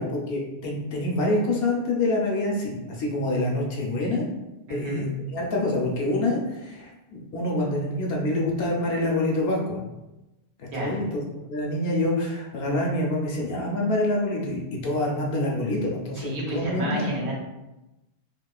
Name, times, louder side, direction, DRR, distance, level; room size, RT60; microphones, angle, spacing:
voice 1, 0.0-4.3 4.7-9.8 10.6-11.2 11.5-17.2, left 1 dB, 65° left, -1 dB, 0.7 m, -26 dB
voice 2, 4.7-5.1 10.7-11.0 16.2-17.3, equal, 75° right, -3 dB, 1.0 m, -31 dB
2.9 x 2.0 x 2.3 m, 0.99 s
omnidirectional pair, 1.1 m